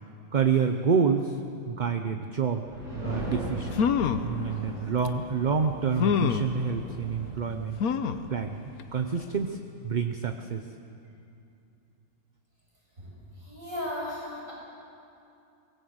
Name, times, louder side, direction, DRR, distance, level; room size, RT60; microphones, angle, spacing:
voice 1, 0.3-1.4 1.7-2.7 3.0-3.8 4.2-7.8 8.3-9.6 9.8-10.7, right 6 dB, 40° right, 6 dB, 0.7 m, -28 dB
sound 1, 2.7-8.1, equal, 90° right, 6.6 m, -39 dB
sound 2, 3.3-3.4 3.7-4.3 5.1-5.2 6.0-6.5 7.8-8.3 8.8-8.9 9.2-9.3, left 7 dB, 85° left, 1.3 m, -25 dB
voice 2, 13.0-14.5, left 1 dB, 65° right, -5 dB, 8.0 m, -36 dB
23.5 x 18.5 x 7.9 m, 2.7 s
omnidirectional pair, 1.5 m